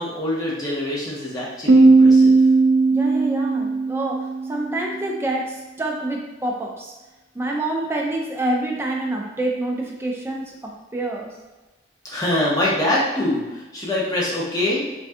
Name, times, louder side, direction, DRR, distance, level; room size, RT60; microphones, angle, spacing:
voice 1, 0.0-2.4 12.0-14.8, left 1 dB, 20° left, -6 dB, 0.7 m, -24 dB
Piano, 1.7-5.1, right 3 dB, 75° right, 0.4 m, -16 dB
voice 2, 2.9-6.9 7.3-11.4, right 1 dB, 15° right, -1 dB, 0.3 m, -27 dB
3.3 x 2.3 x 2.6 m, 1.1 s
head